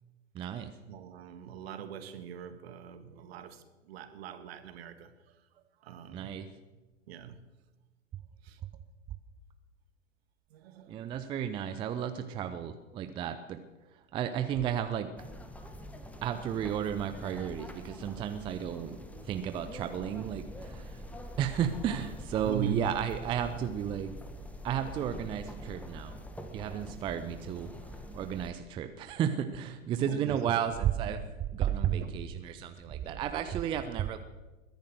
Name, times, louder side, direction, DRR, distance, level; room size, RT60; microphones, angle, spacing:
voice 1, 0.3-0.7 6.1-6.5 10.9-13.6 14.1-15.1 16.2-19.0 19.3-21.0 21.4-24.2 24.6-26.2 26.5-27.7 28.1-31.2 31.5-34.2, right 9 dB, 15° right, 0.5 m, -33 dB
voice 2, 0.9-6.5 7.1-7.5 8.4-8.6 10.5-11.2 14.4-14.5 19.1-19.3 20.2-20.3 22.4-22.9 29.4-29.6 29.9-30.9 31.2-31.3 31.8-32.3 32.9-33.7, right 8 dB, 50° right, 1.7 m, -43 dB
sound 1, 15.2-28.5, equal, 5° left, 1.3 m, -45 dB
21.0 x 10.5 x 6.4 m
figure-of-eight pair, 95°, 39 cm